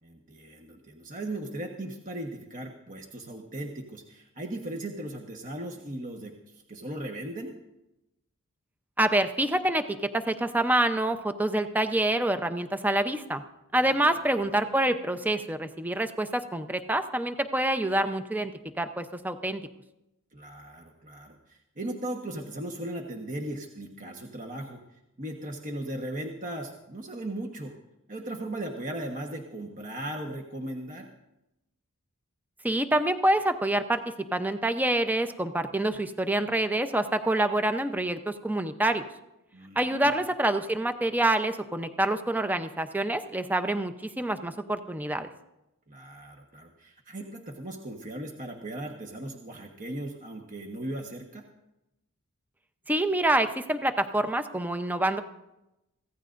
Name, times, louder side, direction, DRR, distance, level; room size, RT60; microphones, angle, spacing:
voice 1, 0.0-7.5 13.8-14.5 20.3-27.7 28.1-31.1 39.5-40.1 45.9-51.4, right 1 dB, 35° right, 2 dB, 1.3 m, -38 dB
voice 2, 9.0-13.4 13.7-18.5 18.8-19.6 32.6-34.0 34.3-39.0 39.8-45.3 52.9-55.2, right 1 dB, 10° right, 8 dB, 0.7 m, -26 dB
25.0 x 16.0 x 2.6 m, 0.92 s
head